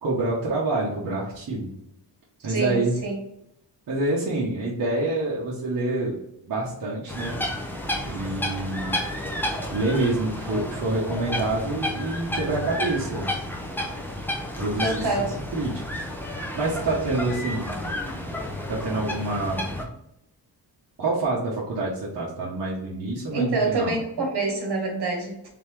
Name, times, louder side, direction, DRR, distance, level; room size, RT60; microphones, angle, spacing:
voice 1, 0.0-1.7 2.4-3.0 3.9-6.2 6.4-7.4 8.0-9.0 9.7-13.3 14.6-15.3 15.5-15.8 16.5-17.8 18.7-19.6 21.0-24.0, right 2 dB, 55° right, -6 dB, 1.1 m, -27 dB
voice 2, 2.5-3.2 14.8-15.3 23.3-25.5, right 3 dB, 70° right, 0 dB, 1.4 m, -26 dB
sound 1, 7.1-19.8, left 1 dB, 5° left, 0.5 m, -31 dB
4.0 x 3.5 x 3.2 m, 0.80 s
wide cardioid pair, 180°, 42 cm